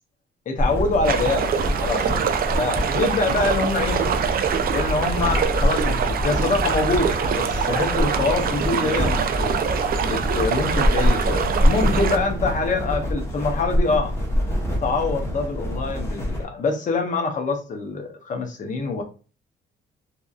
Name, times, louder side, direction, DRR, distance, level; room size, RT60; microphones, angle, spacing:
voice 1, 0.5-2.3 2.6-4.1 4.7-9.6 10.0-14.1 14.8-19.0, left 3 dB, 40° left, 0.6 m, -25 dB
sound 1, 0.6-16.4, equal, 15° left, 0.9 m, -25 dB
sound 2, 1.0-12.2, right 7 dB, 50° right, 0.4 m, -24 dB
2.8 x 2.4 x 2.3 m
cardioid pair, 90°, 20 cm